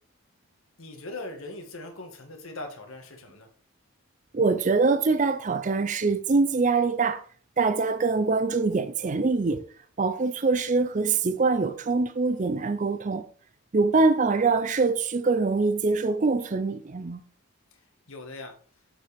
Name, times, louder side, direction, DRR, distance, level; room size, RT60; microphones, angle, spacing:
voice 1, 0.8-3.5 17.7-17.8 18.1-18.5, left 2 dB, 65° left, 1.7 m, -40 dB
voice 2, 4.3-7.2 7.6-9.6 10.0-13.3 13.7-17.2, right 4 dB, 35° right, 0.4 m, -24 dB
7.4 x 7.4 x 3.4 m
head